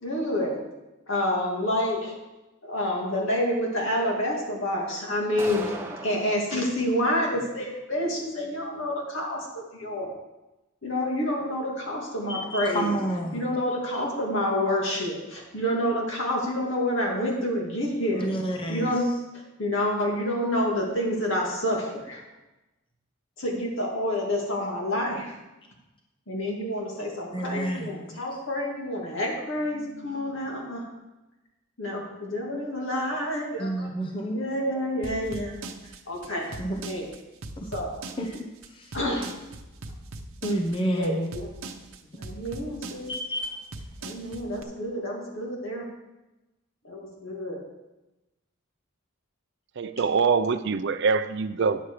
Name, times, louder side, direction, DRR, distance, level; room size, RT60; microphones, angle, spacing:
voice 1, 0.0-0.6 1.1-2.2 2.6-5.8 6.0-10.1 10.8-12.9 13.3-18.3 18.7-19.1 19.3-22.2 23.4-25.4 26.3-30.9 31.8-33.9 34.3-35.6 36.1-36.5 36.8-37.1 37.7-37.9 38.9-39.3 40.9-41.5 42.2-43.1 44.0-45.9 46.8-47.6, left 1 dB, 65° left, 2.4 m, -28 dB
sound 1, 5.4-6.4, right 2 dB, 10° right, 0.8 m, -36 dB
voice 2, 12.3-13.4 18.2-18.9 27.3-28.2 33.6-34.4 36.6-36.8 37.6-37.7 38.2-38.5 38.8-38.9 40.4-41.3 43.1-43.6, right 1 dB, 25° left, 0.8 m, -29 dB
sound 2, 35.0-44.6, right 3 dB, 80° right, 0.9 m, -40 dB
voice 3, 49.8-51.8, right 5 dB, 55° right, 0.4 m, -24 dB
10.0 x 7.4 x 4.8 m
head